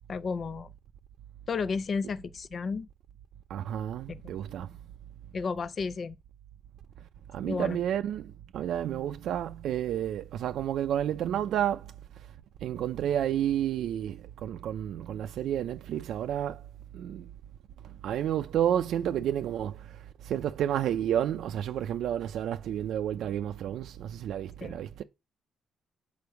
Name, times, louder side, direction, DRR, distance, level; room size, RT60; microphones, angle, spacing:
voice 1, 0.1-0.7 1.5-2.9 4.1-4.4 5.3-6.2 7.4-7.8 24.6-24.8, left 5 dB, 40° left, 0.4 m, -33 dB
voice 2, 3.5-4.7 7.3-11.9 12.6-16.6 16.9-17.3 18.0-19.9 20.2-25.0, right 10 dB, 75° right, 0.5 m, -30 dB
7.0 x 4.7 x 4.6 m
cardioid pair, 130°, 0 cm